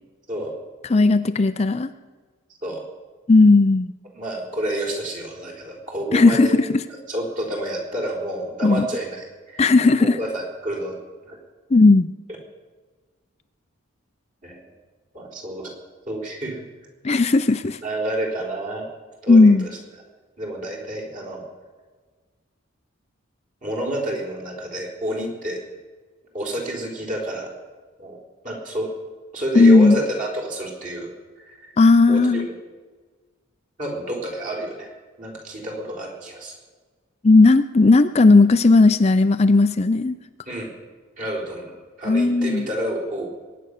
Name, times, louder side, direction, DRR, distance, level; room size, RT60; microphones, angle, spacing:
voice 1, 0.9-1.9 3.3-3.9 6.1-6.8 8.6-8.9 9.6-10.2 11.7-12.1 17.0-17.8 19.3-19.7 29.5-30.0 31.8-32.5 37.2-40.2 42.0-42.6, left 3 dB, 30° left, 10 dB, 0.5 m, -15 dB
voice 2, 4.1-6.6 7.1-9.6 10.0-10.9 11.2-11.4 14.4-14.6 15.1-15.8 16.1-16.7 17.8-18.9 19.2-19.7 20.4-21.4 23.6-25.6 26.3-27.5 28.0-28.2 28.4-28.9 29.3-31.1 31.5-31.7 32.1-32.5 33.8-36.5 40.5-40.7 41.2-43.3, right 1 dB, 40° right, -1 dB, 4.1 m, -29 dB
22.0 x 9.8 x 6.6 m, 1.4 s
head